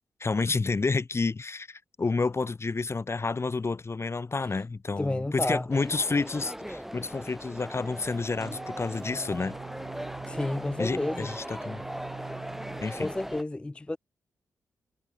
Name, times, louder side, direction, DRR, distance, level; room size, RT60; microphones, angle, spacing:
voice 1, 0.2-9.5 10.8-11.8 12.8-13.1, left 4 dB, 40° left, 1.2 m, -30 dB
voice 2, 5.0-5.7 10.3-11.3 13.0-14.0, left 2 dB, 15° left, 0.4 m, -30 dB
sound 1, 5.7-13.4, equal, 5° right, 1.3 m, -39 dB
sound 2, 8.4-13.4, right 5 dB, 55° right, 3.0 m, -44 dB
supercardioid pair, 40°, 7 cm